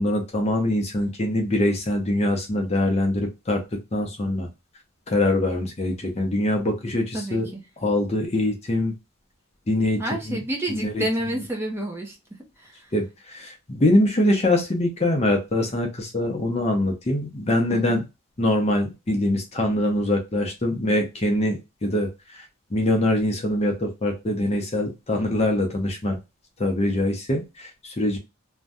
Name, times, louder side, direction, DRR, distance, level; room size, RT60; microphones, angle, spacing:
voice 1, 0.0-3.6 3.9-4.5 5.1-7.5 7.8-8.9 9.7-10.0 10.3-10.4 10.7-11.0 12.9-18.0 18.4-22.5 22.7-26.2 26.6-28.2, left 1 dB, 30° left, 3 dB, 0.6 m, -23 dB
voice 2, 7.1-7.6 10.0-12.2 12.6-12.9 17.7-18.0, right 1 dB, 10° right, 0 dB, 0.6 m, -29 dB
2.6 x 2.2 x 3.4 m, 0.24 s
head